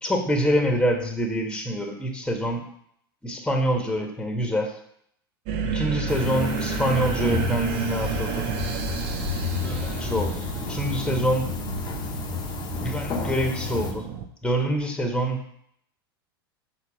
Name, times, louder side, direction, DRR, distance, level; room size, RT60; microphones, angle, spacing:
voice 1, 0.0-2.6 3.2-4.7 5.6-8.4 9.6-11.5 12.8-14.1 14.4-15.4, equal, 5° left, 2 dB, 1.6 m, -26 dB
sound 1, 5.5-14.3, right 7 dB, 45° right, 1.0 m, -31 dB
sound 2, 6.1-13.9, left 7 dB, 35° left, 1.3 m, -32 dB
7.0 x 3.9 x 6.3 m, 0.68 s
hypercardioid pair, 95°, 13 cm